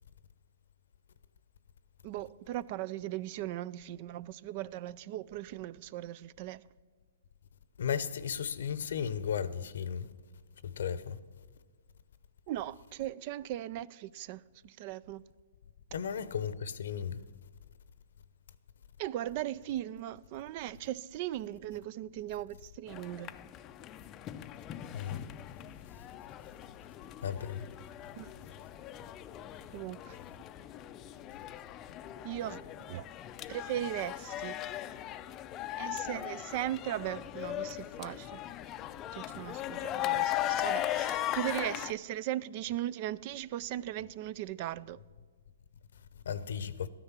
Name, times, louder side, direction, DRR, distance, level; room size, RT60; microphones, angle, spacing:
voice 1, 2.0-6.6 12.5-15.2 19.0-23.3 28.2-28.3 29.7-30.2 32.2-32.6 32.9-33.0 33.5-34.6 35.8-38.4 39.1-45.0, right 13 dB, 40° right, 0.4 m, -38 dB
voice 2, 7.8-10.1 10.6-11.2 15.9-17.2 24.9-25.2 27.2-27.7 46.3-46.9, left 7 dB, 70° left, 0.8 m, -35 dB
sound 1, 22.9-41.9, left 13 dB, 25° left, 0.5 m, -38 dB
12.5 x 9.9 x 5.9 m
hypercardioid pair, 140°, 0 cm